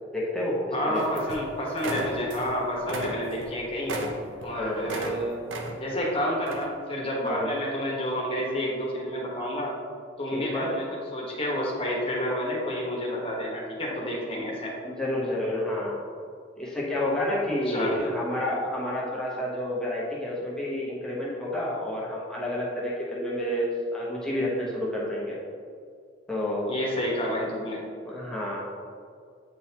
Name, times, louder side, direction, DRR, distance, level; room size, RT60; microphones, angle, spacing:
voice 1, 0.1-1.2 4.5-4.9 7.2-7.5 10.3-10.7 14.4-14.5 14.8-16.0 16.6-25.4 26.3-26.8 28.0-28.6, left 1 dB, 5° left, -6 dB, 0.9 m, -30 dB
voice 2, 0.7-3.9 4.4-5.3 5.8-9.7 10.2-14.7 17.7-18.1 26.7-27.8, equal, 30° left, -3 dB, 1.2 m, -29 dB
sound 1, 1.0-1.5 1.8-2.5 2.8-5.2 5.5-6.0 6.5-6.7, right 1 dB, 75° right, 0.7 m, -34 dB
8.5 x 3.8 x 2.9 m, 2.3 s
head